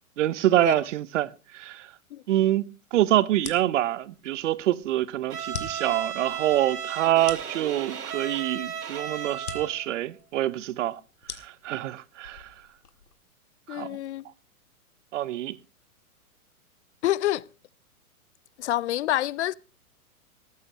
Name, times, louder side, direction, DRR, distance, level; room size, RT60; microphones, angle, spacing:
voice 1, 0.2-1.9 2.3-11.0 11.3-12.5 13.7-14.0 15.1-15.6, right 13 dB, 55° right, 0.8 m, -26 dB
sound 1, 3.3-13.2, left 6 dB, 90° left, 2.0 m, -44 dB
Bowed string instrument, 5.3-9.9, right 8 dB, 80° right, 2.1 m, -35 dB
voice 2, 13.7-14.3 17.0-17.4 18.6-19.5, left 14 dB, 50° left, 0.6 m, -27 dB
20.0 x 14.0 x 3.0 m
hypercardioid pair, 125°, 44 cm